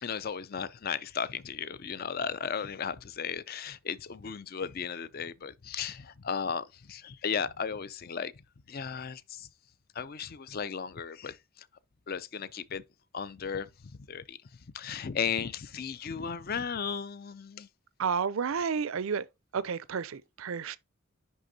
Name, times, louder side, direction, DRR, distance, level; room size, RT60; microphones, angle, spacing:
voice 1, 0.0-8.3 8.7-9.5 9.9-11.7 12.1-12.8 13.1-14.4 14.7-17.7 18.6-18.7, left 6 dB, 45° left, 0.4 m, -35 dB
voice 2, 18.0-19.3 19.5-20.8, right 6 dB, 70° right, 0.5 m, -31 dB
10.5 x 3.5 x 2.7 m
head